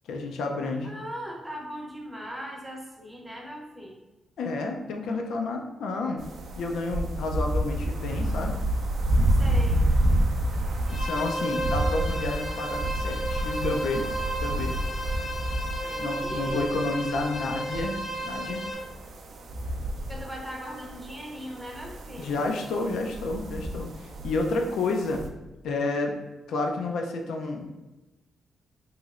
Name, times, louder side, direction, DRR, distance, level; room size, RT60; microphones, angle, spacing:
voice 1, 0.1-0.9 4.4-6.2 6.6-8.6 10.9-14.1 14.4-14.8 16.0-18.0 18.2-18.6 22.2-25.2 25.6-26.1 26.5-27.9, left 3 dB, 85° left, 3 dB, 0.4 m, -30 dB
voice 2, 0.8-4.0 9.3-9.8 15.8-16.7 20.1-22.4, equal, 10° right, -1 dB, 0.6 m, -39 dB
sound 1, 6.2-25.3, right 1 dB, 60° right, 0.3 m, -29 dB
sound 2, 10.9-18.7, right 1 dB, 35° left, 0.5 m, -33 dB
3.0 x 2.9 x 2.4 m, 1.1 s
wide cardioid pair, 145°, 0 cm